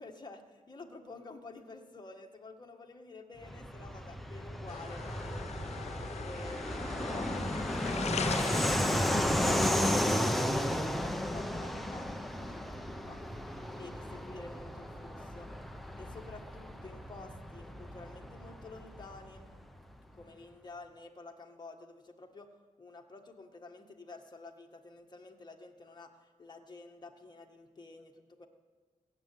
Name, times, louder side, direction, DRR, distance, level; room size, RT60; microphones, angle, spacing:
voice 1, 0.0-5.5 6.2-13.2 13.8-15.5 16.0-19.5 20.1-28.5, left 3 dB, 30° left, 2 dB, 1.7 m, -50 dB
Fixed-wing aircraft airplane, 3.4-19.6, equal, ahead, 0.9 m, -34 dB
sound 1, 4.7-9.9, left 7 dB, 50° left, 0.4 m, -41 dB
19.0 x 8.0 x 9.4 m, 1.4 s
wide cardioid pair, 130°, 15 cm